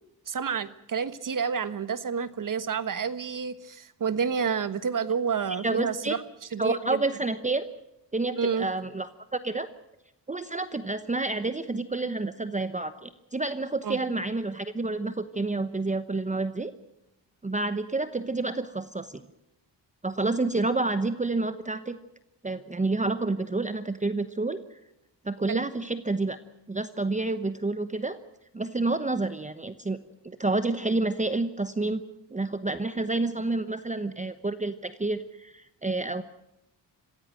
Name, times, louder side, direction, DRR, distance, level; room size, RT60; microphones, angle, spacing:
voice 1, 0.3-6.2 6.5-7.0 8.4-8.7 13.8-14.0 25.5-25.6, right 6 dB, 45° right, 14 dB, 1.4 m, -29 dB
voice 2, 5.5-6.2 6.6-7.7 8.1-9.7 10.3-16.7 17.4-19.2 20.0-22.0 22.4-24.6 25.2-26.4 26.7-28.2 28.5-30.0 30.2-32.0 32.3-36.2, right 2 dB, 15° right, 11 dB, 1.0 m, -29 dB
26.5 x 15.5 x 7.7 m, 0.84 s
cardioid pair, 105°, 43 cm